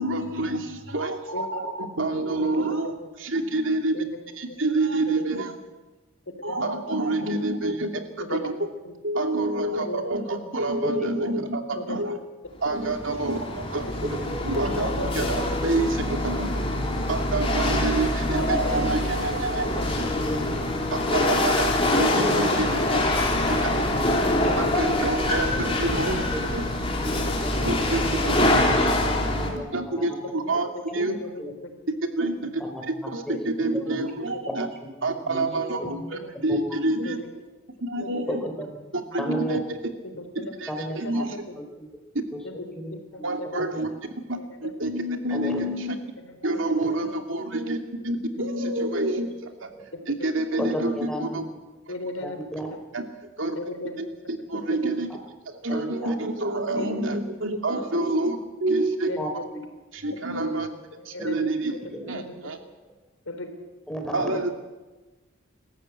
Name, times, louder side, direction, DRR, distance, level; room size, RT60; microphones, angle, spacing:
voice 1, 0.0-2.9 3.2-4.0 4.4-5.6 6.4-7.9 8.3-8.7 9.0-12.2 12.6-13.9 14.4-16.5 17.1-19.7 19.9-20.0 20.4-20.5 20.9-21.6 22.0-23.0 23.5-23.8 24.4-26.2 26.5-26.6 27.6-28.3 28.6-28.7 29.7-31.2 32.2-34.7 35.0-37.2 37.8-38.4 38.9-39.8 40.4-41.4 43.2-43.9 44.3-46.0 46.4-47.8 48.0-49.7 50.1-51.4 52.9-53.0 53.4-53.6 54.0-55.1 55.5-59.1 59.9-60.7 61.0-61.7 62.1-62.6 64.1-64.5, right 2 dB, 75° right, 4 dB, 2.7 m, -27 dB
voice 2, 1.3-1.7 2.6-3.1 3.9-4.2 6.5-6.7 8.2-8.4 8.8-8.9 9.8-10.0 11.7-12.0 13.7-13.9 15.0-15.1 15.5-15.6 18.4-18.6 19.6-20.2 22.3-23.1 24.7-24.8 25.8-25.9 27.5-28.5 30.2-30.8 31.1-31.7 33.6-33.8 34.2-34.4 35.8-36.3 37.0-37.3 38.0-38.4 40.2-40.6 41.0-41.6 42.4-42.7 43.4-43.6 44.4-44.7 46.2-46.3 49.9-50.0 51.9-52.4 53.5-54.0 54.7-54.9 56.8-57.0 57.9-58.1 59.1-59.6 60.1-60.3 61.0-61.8 62.1-62.5 63.3-63.5 64.3-64.5, left 2 dB, 85° left, 5 dB, 4.0 m, -37 dB
voice 3, 10.8-11.4 14.0-15.0 17.5-17.7 19.9-20.9 21.3-21.5 22.2-22.5 23.6-23.9 26.3-26.4 27.0-27.5 27.8-27.9 28.2-28.7 29.1-30.2 31.4-31.5 32.6-32.8 33.3-33.4 33.7-34.0 34.5-34.6 35.3-35.4 35.8-36.0 36.5-36.8 38.3-38.7 39.2-39.6 40.7-41.2 41.8-41.9 42.8-43.2 43.7-43.8 45.3-45.6 46.8-46.9 50.6-51.4 52.2-52.7 55.7-56.1 59.2-59.3 61.2-61.3 61.9-62.1 63.9-64.2, equal, 5° left, 3 dB, 3.9 m, -34 dB
Chatter / Hiss / Rattle, 12.6-29.5, left 1 dB, 30° left, 3.3 m, -25 dB
26.5 x 14.5 x 8.3 m, 1.2 s
head